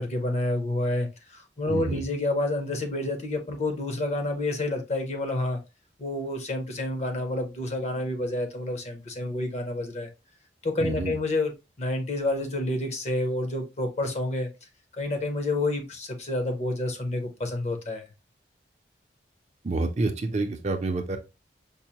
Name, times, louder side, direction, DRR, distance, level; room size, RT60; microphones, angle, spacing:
voice 1, 0.0-5.6 6.0-10.1 10.6-11.5 11.8-14.5 15.0-18.0, left 2 dB, 40° left, 0.8 m, -29 dB
voice 2, 1.7-2.0 10.8-11.1 19.6-21.2, right 3 dB, 40° right, 0.5 m, -28 dB
5.3 x 2.1 x 2.8 m
head